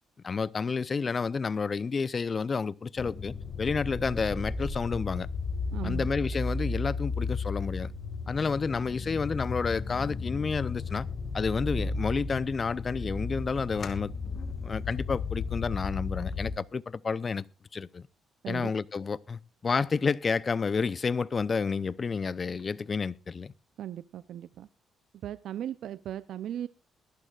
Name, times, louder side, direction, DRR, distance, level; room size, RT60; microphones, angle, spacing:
voice 1, 0.2-5.3 5.8-7.9 8.3-11.1 11.3-14.1 14.6-17.4 17.7-18.0 18.5-23.5, left 5 dB, 40° left, 0.6 m, -30 dB
sound 1, 3.0-16.6, left 4 dB, 55° left, 1.9 m, -34 dB
voice 2, 5.7-6.1 18.4-18.7 23.8-24.7 25.2-26.7, right 11 dB, 70° right, 0.5 m, -37 dB
21.5 x 11.5 x 2.4 m
cardioid pair, 75°, 0 cm